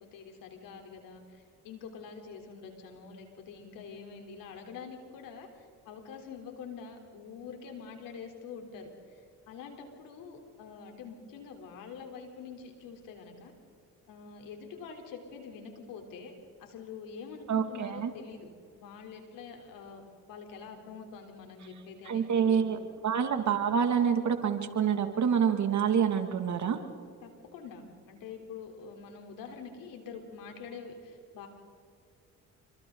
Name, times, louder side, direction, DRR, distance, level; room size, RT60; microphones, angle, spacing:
voice 1, 0.0-8.9 9.5-13.5 14.1-16.3 16.6-22.7 27.2-31.5, left 5 dB, 80° left, 3 dB, 3.9 m, -46 dB
voice 2, 17.5-18.1 22.1-22.8 23.0-26.8, right 7 dB, 60° right, 7 dB, 2.4 m, -27 dB
29.0 x 24.5 x 4.0 m, 2.2 s
supercardioid pair, 65°, 33 cm